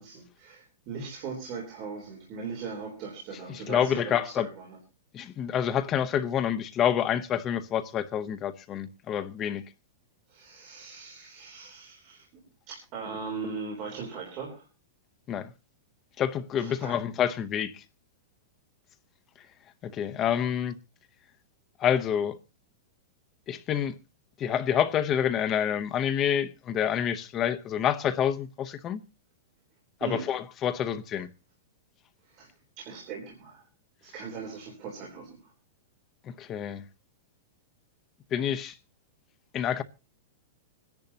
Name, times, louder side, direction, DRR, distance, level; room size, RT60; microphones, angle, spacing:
voice 1, 0.0-4.8 10.3-12.3 12.7-14.7 16.5-17.0 30.0-30.2 32.3-32.5 32.8-33.7 34.0-35.4, right 5 dB, 30° right, 3.5 m, -39 dB
voice 2, 3.5-4.5 5.1-9.6 15.3-15.5 16.2-17.8 19.8-20.8 21.8-22.4 23.5-23.9 24.4-29.0 30.0-31.3 36.4-36.8 38.3-38.7 39.5-39.8, left 9 dB, 20° left, 0.7 m, -28 dB
26.0 x 10.5 x 2.8 m
supercardioid pair, 175°, 0 cm